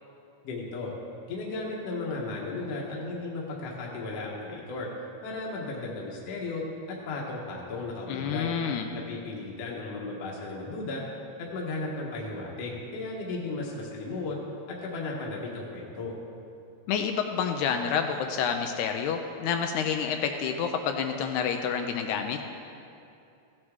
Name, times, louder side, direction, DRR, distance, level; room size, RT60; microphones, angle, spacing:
voice 1, 0.4-0.9 1.3-4.9 5.2-8.5 8.9-11.0 11.4-14.4 14.7-16.1, left 3 dB, 65° left, -3 dB, 2.0 m, -35 dB
voice 2, 8.1-8.9 16.9-22.4, left 7 dB, 85° left, 5 dB, 2.0 m, -28 dB
15.5 x 8.0 x 3.6 m, 2.6 s
omnidirectional pair, 3.4 m